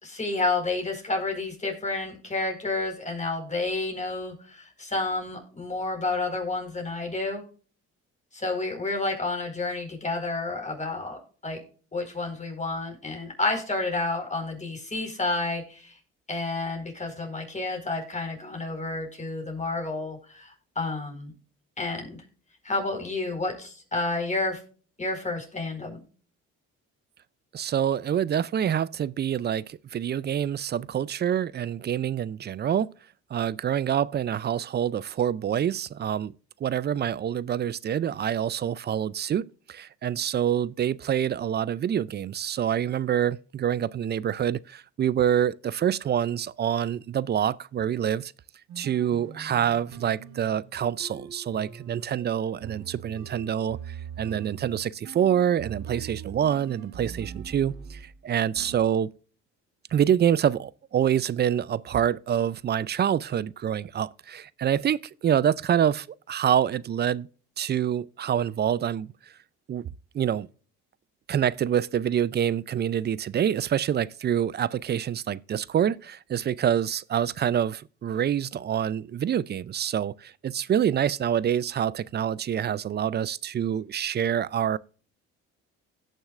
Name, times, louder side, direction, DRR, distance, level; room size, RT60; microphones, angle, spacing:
voice 1, 0.0-7.4 8.3-11.6 11.9-16.0 16.3-21.3 21.8-22.2 22.6-24.6 25.0-26.0, left 3 dB, 25° left, 4.5 m, -30 dB
voice 2, 27.5-32.9 33.3-36.3 36.6-48.3 48.8-59.1 59.9-67.3 67.6-69.1 69.7-69.9 70.1-70.5 71.3-84.8, right 9 dB, 35° right, 0.4 m, -26 dB
sound 1, 48.7-58.2 58.5-58.8, right 8 dB, 70° right, 1.5 m, -42 dB
16.5 x 6.4 x 2.5 m
supercardioid pair, 80°, 29 cm